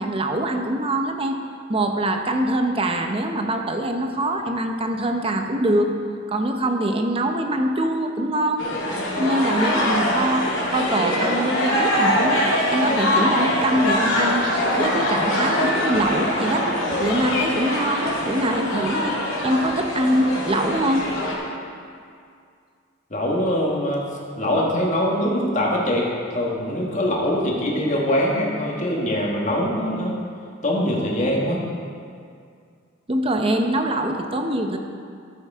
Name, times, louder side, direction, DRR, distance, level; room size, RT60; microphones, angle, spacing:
voice 1, 0.0-1.4 1.7-6.0 6.3-8.6 9.2-14.5 14.8-16.7 17.0-19.1 19.4-21.1 33.1-34.8, right 1 dB, 30° right, 4 dB, 0.7 m, -23 dB
sound 1, 8.6-21.3, left 1 dB, 80° left, 2.0 m, -23 dB
voice 2, 23.1-24.1 24.4-30.1 30.6-31.6, left 1 dB, 40° left, -3 dB, 1.7 m, -23 dB
13.5 x 8.2 x 3.6 m, 2.3 s
head